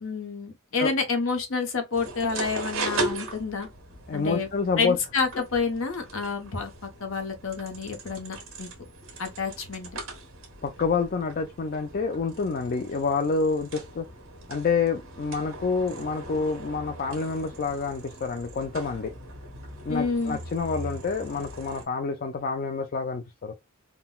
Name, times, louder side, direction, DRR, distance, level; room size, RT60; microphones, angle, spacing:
voice 1, 0.0-3.7 4.1-4.5 4.8-8.7 9.2-9.9 19.9-20.4, left 4 dB, 60° left, 0.9 m, -29 dB
sound 1, 1.9-21.8, right 2 dB, 65° right, 1.3 m, -39 dB
voice 2, 4.1-5.0 10.6-14.1 14.5-19.1 19.9-23.5, left 4 dB, 40° left, 0.3 m, -28 dB
3.7 x 2.2 x 2.2 m
head